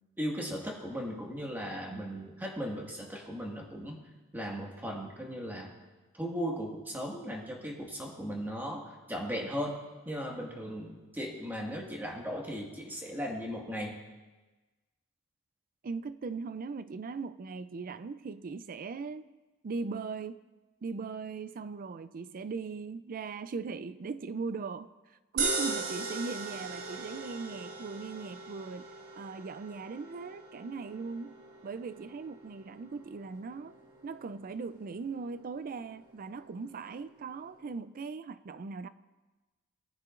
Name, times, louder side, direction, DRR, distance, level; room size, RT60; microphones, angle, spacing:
voice 1, 0.2-4.0 4.3-5.7 6.1-9.8 10.0-14.0, equal, 10° right, 1.7 m, -37 dB
voice 2, 15.8-19.2 19.6-20.4 20.8-24.9 25.3-28.9 29.1-31.4 31.6-33.7 34.0-38.9, right 4 dB, 40° right, 0.4 m, -39 dB
sound 1, 25.4-37.7, right 3 dB, 80° right, 2.0 m, -40 dB
19.0 x 9.5 x 2.5 m
head